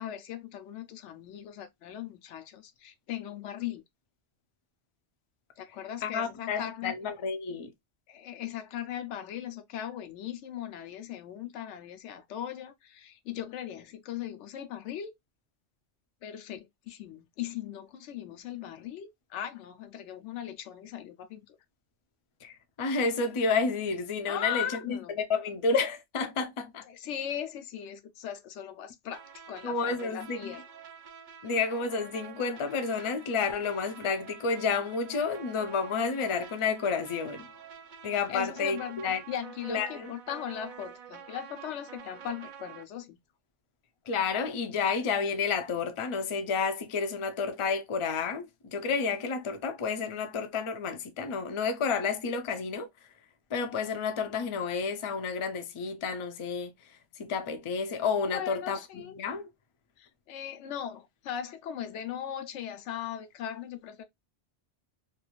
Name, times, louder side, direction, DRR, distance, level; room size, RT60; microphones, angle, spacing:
voice 1, 0.0-3.8 5.6-6.9 8.1-15.1 16.2-21.6 24.3-25.2 26.9-29.2 29.5-30.6 38.3-43.2 58.3-59.2 60.0-64.0, left 10 dB, 85° left, 0.9 m, -39 dB
voice 2, 6.0-7.7 22.4-25.0 25.3-26.8 29.6-30.5 31.4-37.5 38.0-39.2 39.7-40.1 44.1-52.9 53.5-59.4, left 5 dB, 50° left, 0.3 m, -30 dB
sound 1, 29.1-42.8, right 7 dB, 55° right, 0.6 m, -48 dB
2.6 x 2.4 x 2.9 m
omnidirectional pair, 1.2 m